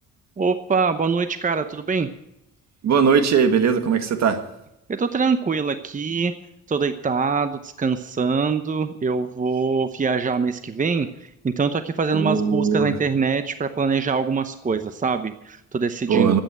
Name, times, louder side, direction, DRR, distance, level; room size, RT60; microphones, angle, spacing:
voice 1, 0.4-2.1 4.9-6.3 6.7-16.4, right 5 dB, 25° right, 10 dB, 0.9 m, -24 dB
voice 2, 2.8-4.4 12.1-12.9 16.1-16.4, right 6 dB, 60° right, 8 dB, 1.8 m, -19 dB
13.0 x 9.1 x 8.8 m, 0.84 s
cardioid pair, 90°, 30 cm